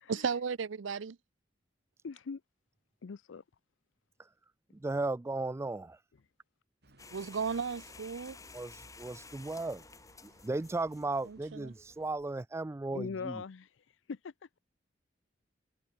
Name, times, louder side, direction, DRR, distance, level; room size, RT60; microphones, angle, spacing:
voice 1, 0.1-1.2 7.1-8.4 11.2-11.7, right 5 dB, 75° right, 0.5 m, -35 dB
voice 2, 2.0-2.4 3.0-3.4 12.9-13.7 14.1-14.6, left 5 dB, 75° left, 0.5 m, -41 dB
voice 3, 4.7-6.0 8.5-9.8 10.2-13.4, right 2 dB, 15° right, 0.3 m, -36 dB
sound 1, 6.8-12.1, right 2 dB, 60° right, 4.2 m, -65 dB
sound 2, 7.0-12.2, left 4 dB, 20° left, 1.1 m, -53 dB
head